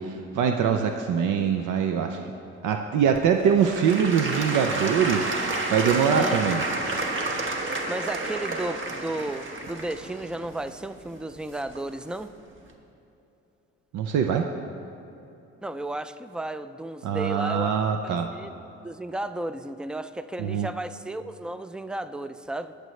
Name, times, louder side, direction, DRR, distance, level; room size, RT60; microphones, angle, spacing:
voice 1, 0.0-2.2 2.6-5.3 5.7-6.6 13.9-14.5 17.0-18.3 20.4-20.7, right 7 dB, 80° right, 5 dB, 0.6 m, -23 dB
Applause / Crowd, 3.1-12.0 12.6-12.7, right 2 dB, 40° right, 1.2 m, -30 dB
voice 2, 7.9-12.3 15.6-17.7 18.0-18.5 18.8-22.7, right 1 dB, 5° right, 12 dB, 0.3 m, -33 dB
19.0 x 6.7 x 3.2 m, 3.0 s
cardioid pair, 90°, 30 cm